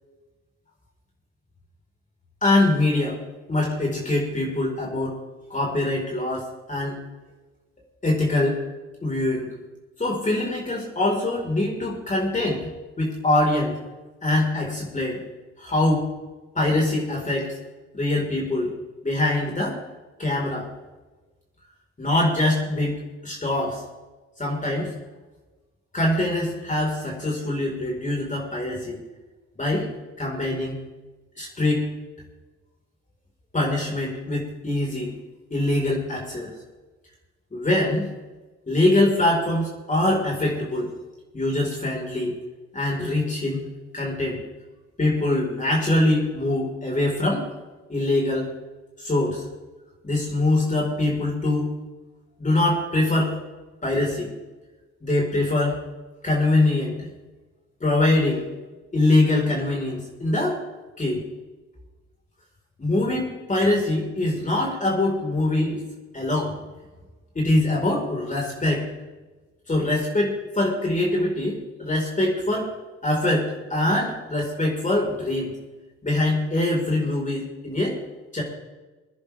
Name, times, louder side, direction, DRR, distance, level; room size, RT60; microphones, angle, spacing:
voice 1, 2.4-3.2 3.5-5.2 5.5-7.0 8.0-8.6 9.0-9.5 10.0-12.7 13.0-13.8 14.2-15.2 15.6-16.1 16.5-17.6 17.9-18.7 19.0-19.8 20.2-20.7 22.0-22.9 23.2-23.8 24.4-24.9 25.9-29.0 29.6-29.9 30.2-30.8 31.4-31.9 33.5-35.1 35.5-36.5 37.5-38.1 38.7-40.9 41.3-42.3 42.7-43.7 43.9-44.4 45.0-47.5 47.9-48.5 49.0-49.4 50.0-51.7 52.4-53.3 53.8-54.3 55.0-55.8 56.2-57.1 57.8-58.4 58.9-60.6 61.0-61.2 62.8-65.8 66.1-66.5 67.3-68.8 69.7-72.7 73.0-75.5 76.0-78.0 78.3-78.4, left 2 dB, 25° left, -2 dB, 4.6 m, -23 dB
23.0 x 10.5 x 3.5 m, 1.2 s
cardioid pair, 90°, 30 cm